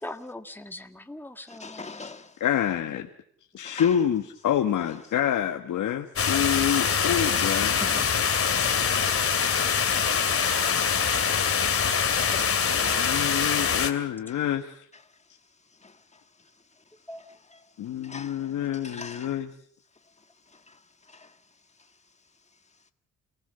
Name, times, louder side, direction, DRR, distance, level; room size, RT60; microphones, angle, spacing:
voice 1, 0.0-2.1 7.8-8.1 12.0-12.1 17.1-17.2, left 1 dB, 5° left, 1.8 m, -40 dB
voice 2, 1.5-2.3 3.6-3.9 12.2-13.2 18.0-18.4 18.8-19.3 21.1-21.3, left 3 dB, 20° left, 1.8 m, -41 dB
voice 3, 2.4-3.1 3.5-7.8 13.0-14.8 17.8-19.5, left 9 dB, 85° left, 1.6 m, -27 dB
sound 1, 6.2-13.9, left 6 dB, 45° left, 2.6 m, -24 dB
29.0 x 19.0 x 6.9 m
cardioid pair, 110°, 30 cm